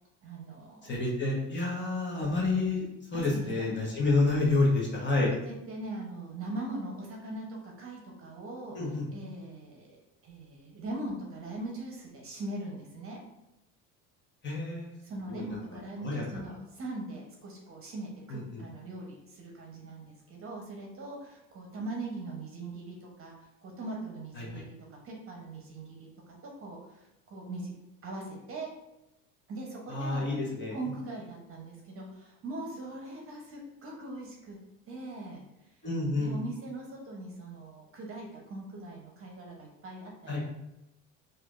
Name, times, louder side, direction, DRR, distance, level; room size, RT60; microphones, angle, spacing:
voice 1, 0.2-1.1 3.1-3.5 5.2-8.8 9.1-13.2 15.0-24.7 25.0-27.7 28.0-28.7 29.5-30.3 30.7-34.6 34.9-35.8 36.1-40.1, right 2 dB, 35° right, -1 dB, 0.9 m, -41 dB
voice 2, 0.8-2.8 3.1-5.3 8.7-9.0 14.4-14.9 15.3-15.5 16.0-16.5 18.3-18.6 24.4-24.6 29.9-30.8 35.8-36.4 40.3-40.4, left 2 dB, 30° left, -3 dB, 1.1 m, -29 dB
4.2 x 2.5 x 2.5 m, 0.89 s
supercardioid pair, 100°, 38 cm